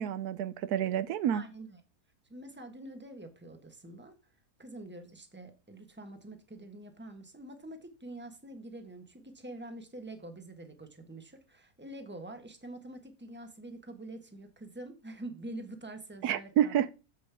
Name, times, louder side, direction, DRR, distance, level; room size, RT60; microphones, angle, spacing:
voice 1, 0.0-1.4 16.2-16.9, right 10 dB, 80° right, 1.1 m, -29 dB
voice 2, 1.3-1.8 2.3-4.2 4.6-16.9, right 1 dB, 10° right, 1.3 m, -46 dB
7.7 x 7.1 x 3.5 m
omnidirectional pair, 1.6 m